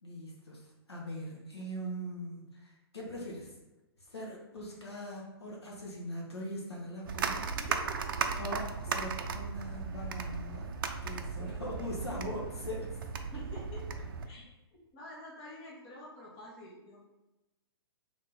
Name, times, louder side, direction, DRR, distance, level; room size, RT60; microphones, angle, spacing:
voice 1, 0.0-3.5 4.0-7.5 8.3-10.7 11.0-12.9, equal, 80° left, -3 dB, 1.2 m, -41 dB
sound 1, 7.1-14.3, right 5 dB, 55° right, 0.4 m, -36 dB
voice 2, 7.7-8.0 13.3-13.9 14.3-14.5 14.9-17.0, left 1 dB, 30° left, -4 dB, 1.4 m, -48 dB
3.7 x 3.1 x 4.1 m, 1.0 s
figure-of-eight pair, 115°, 14 cm